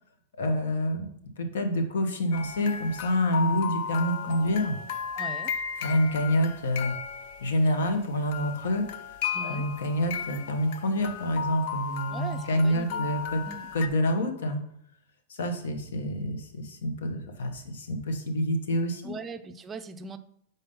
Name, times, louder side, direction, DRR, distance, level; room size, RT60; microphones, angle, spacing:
voice 1, 0.4-1.1 1.4-4.7 5.8-6.9 7.4-8.9 9.4-13.4 13.7-14.6 15.4-19.1, equal, 85° left, 6 dB, 1.1 m, -27 dB
sound 1, 2.3-8.0 8.3-13.9, left 7 dB, 55° left, 0.4 m, -35 dB
voice 2, 5.2-5.5 9.3-9.7 12.1-13.1 13.4-13.7 19.0-20.2, right 4 dB, 15° right, 9 dB, 0.4 m, -40 dB
5.3 x 4.1 x 5.4 m, 0.70 s
supercardioid pair, 145°, 0 cm